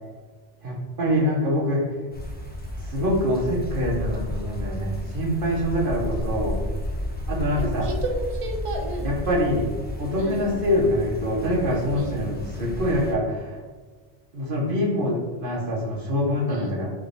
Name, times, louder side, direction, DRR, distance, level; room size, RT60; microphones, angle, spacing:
voice 1, 0.6-1.8 2.8-6.6 7.3-7.9 9.0-9.7 10.0-13.6 14.3-16.9, left 1 dB, 55° right, -2 dB, 1.1 m, -25 dB
sound 1, 2.1-13.1, equal, 10° left, 0.5 m, -32 dB
voice 2, 7.5-9.1 10.2-10.4 12.0-12.2 16.5-16.8, right 1 dB, 35° right, 2 dB, 0.6 m, -32 dB
3.6 x 3.4 x 3.9 m, 1.4 s
omnidirectional pair, 1.1 m